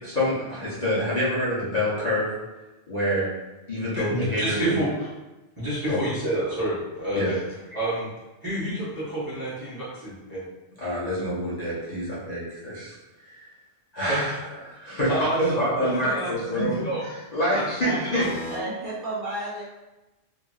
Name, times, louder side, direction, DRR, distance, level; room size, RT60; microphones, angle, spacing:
voice 1, 0.0-2.3 2.9-3.3 3.7-4.8 5.9-6.0 7.1-7.4 7.7-7.8 10.8-12.9 13.2-13.5 13.9-14.3 14.6-18.2, equal, 40° left, -9 dB, 0.8 m, -27 dB
voice 2, 3.9-4.9 5.6-7.4 7.7-8.1 8.4-10.4 14.1-14.2 15.1-17.0 17.5-18.2, right 1 dB, 20° right, -9 dB, 0.9 m, -29 dB
voice 3, 17.8-19.6, right 1 dB, 55° right, -7 dB, 0.7 m, -32 dB
2.9 x 2.5 x 2.3 m, 1.1 s
omnidirectional pair, 1.2 m